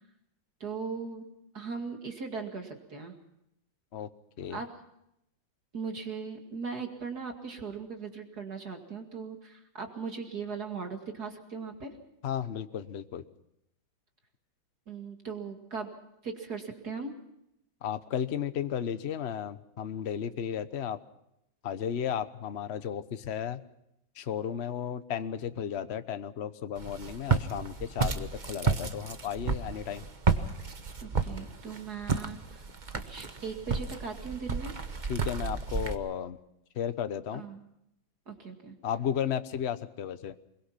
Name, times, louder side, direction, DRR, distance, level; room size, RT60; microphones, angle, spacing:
voice 1, 0.6-1.3 1.5-3.1 4.5-4.8 5.7-12.0 14.9-15.9 16.2-17.2 31.0-34.8 37.3-37.6 38.3-38.8, right 5 dB, 50° right, 4 dB, 2.7 m, -39 dB
voice 2, 12.2-13.2 17.8-21.0 21.6-23.6 24.2-30.0 35.1-36.4 36.8-37.4 38.8-40.3, left 8 dB, 45° left, 11 dB, 0.9 m, -34 dB
Walk footsteps, 26.8-35.9, right 5 dB, 30° right, 1.0 m, -32 dB
24.0 x 22.5 x 5.8 m, 0.82 s
omnidirectional pair, 2.2 m